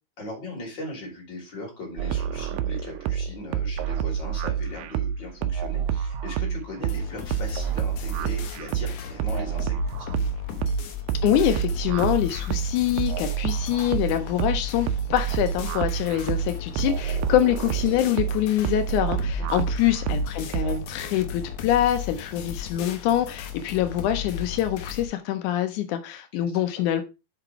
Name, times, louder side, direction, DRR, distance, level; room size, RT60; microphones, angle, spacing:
voice 1, 0.2-10.2 26.4-26.6, left 1 dB, 30° left, 3.2 m, -38 dB
sound 1, 2.0-20.8, right 9 dB, 80° right, 2.1 m, -28 dB
sound 2, 6.8-25.1, left 8 dB, 70° left, 2.0 m, -36 dB
voice 2, 11.2-27.0, left 11 dB, 85° left, 1.7 m, -25 dB
5.9 x 5.8 x 4.5 m
omnidirectional pair, 4.3 m